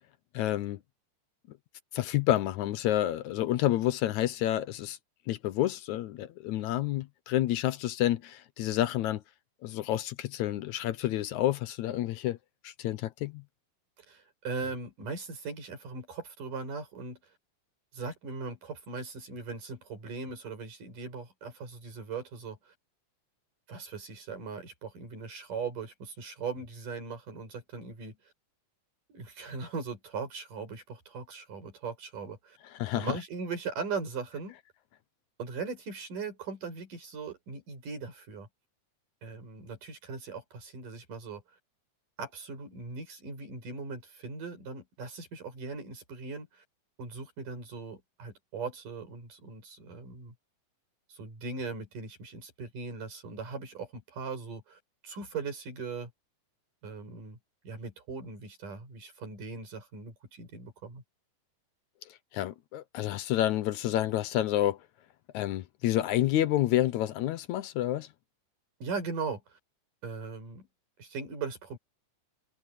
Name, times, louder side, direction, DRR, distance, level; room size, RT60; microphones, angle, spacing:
voice 1, 0.3-0.8 1.9-5.0 5.3-9.2 9.6-12.4 12.6-13.4 32.8-33.2 62.1-64.8 65.3-68.1, left 13 dB, 75° left, 2.0 m, -29 dB
voice 2, 14.0-17.2 17.9-22.7 23.7-28.2 29.1-32.6 32.9-34.6 35.4-38.5 39.2-41.4 42.2-46.6 47.0-50.3 51.1-56.1 56.8-57.4 57.6-61.0 68.8-69.6 70.0-70.7 71.0-71.8, right 4 dB, 85° right, 7.8 m, -39 dB
omnidirectional pair, 3.7 m